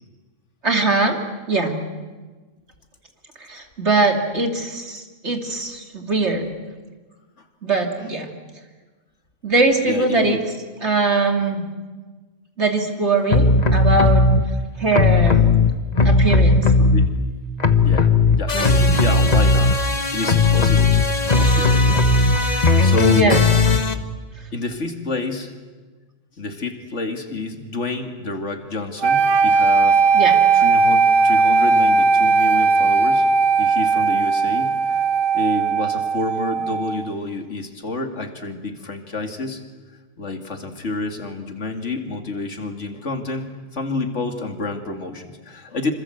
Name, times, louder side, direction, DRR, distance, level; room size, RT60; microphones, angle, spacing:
voice 1, 0.6-1.2 1.5-1.8 3.4-6.5 7.6-8.3 9.4-10.4 10.8-11.6 12.6-14.4 14.8-15.5 16.0-16.7 18.5-19.0 23.1-23.4 30.1-30.3, right 3 dB, 60° right, 3 dB, 3.1 m, -21 dB
voice 2, 9.8-10.4 16.8-17.0 17.8-18.1 18.4-19.8 20.1-23.5 24.5-25.5 26.4-30.0 30.5-33.3 33.6-35.0 35.3-39.6 40.2-45.9, left 3 dB, 65° left, 5 dB, 2.7 m, -29 dB
sound 1, 13.3-14.4 14.9-17.3 17.6-23.9, left 3 dB, 35° left, 1.4 m, -16 dB
sound 2, 29.0-37.1, right 4 dB, 80° right, 1.5 m, -17 dB
26.5 x 26.0 x 8.0 m, 1.3 s
omnidirectional pair, 1.3 m